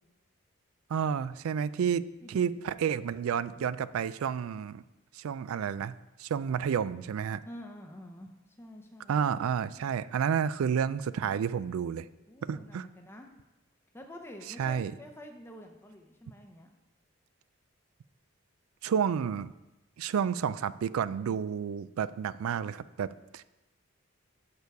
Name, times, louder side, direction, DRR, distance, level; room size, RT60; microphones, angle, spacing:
voice 1, 0.9-4.8 5.1-7.4 9.1-12.1 12.4-12.9 14.5-14.9 18.8-19.5 20.0-23.4, right 7 dB, 85° right, 17 dB, 0.3 m, -30 dB
voice 2, 7.4-9.1 12.3-13.3 13.9-16.7, left 1 dB, 10° left, 3 dB, 0.6 m, -48 dB
6.8 x 6.7 x 4.7 m, 1.0 s
head